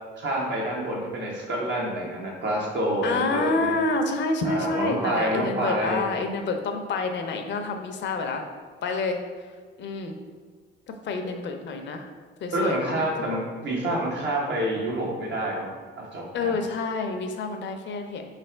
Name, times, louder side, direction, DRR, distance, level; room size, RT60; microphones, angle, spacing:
voice 1, 0.2-3.7 4.4-6.1 12.5-16.6, right 1 dB, 65° right, -2 dB, 1.2 m, -28 dB
voice 2, 3.0-8.4 8.8-9.2 9.8-10.2 11.1-12.1 12.4-13.0 13.6-14.0 16.3-18.2, left 3 dB, 65° left, 5 dB, 0.6 m, -28 dB
3.5 x 3.3 x 4.4 m, 1.5 s
cardioid pair, 90°, 20 cm